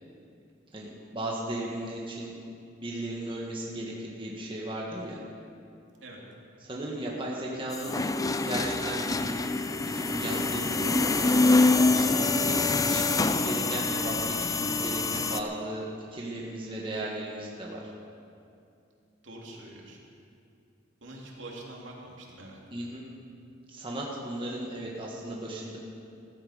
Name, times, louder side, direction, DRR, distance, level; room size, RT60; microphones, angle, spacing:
voice 1, 0.7-2.3 2.8-5.2 6.6-8.0 8.4-9.4 9.8-10.9 11.2-11.3 11.9-15.9 16.1-17.8 22.7-23.0 23.7-25.8, right 1 dB, 25° right, -3 dB, 1.6 m, -36 dB
sound 1, 7.7-15.4, left 3 dB, 20° left, 0.5 m, -25 dB
voice 2, 19.2-20.0 21.0-22.6, right 2 dB, 70° right, -2 dB, 2.8 m, -44 dB
15.0 x 14.0 x 5.1 m, 2.5 s
head